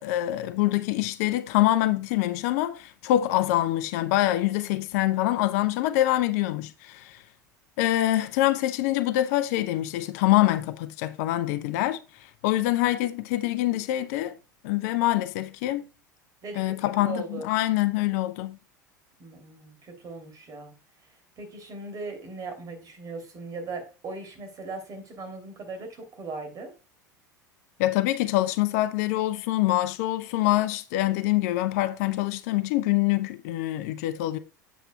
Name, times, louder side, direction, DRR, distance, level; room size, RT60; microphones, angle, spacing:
voice 1, 0.0-7.2 7.8-14.4 14.6-15.8 16.6-18.6 27.8-34.4, left 15 dB, 55° left, 0.6 m, -25 dB
voice 2, 16.4-17.5 19.2-20.7 21.4-26.7, right 3 dB, 35° right, 3.0 m, -38 dB
8.1 x 8.0 x 2.3 m
figure-of-eight pair, 75°, 10 cm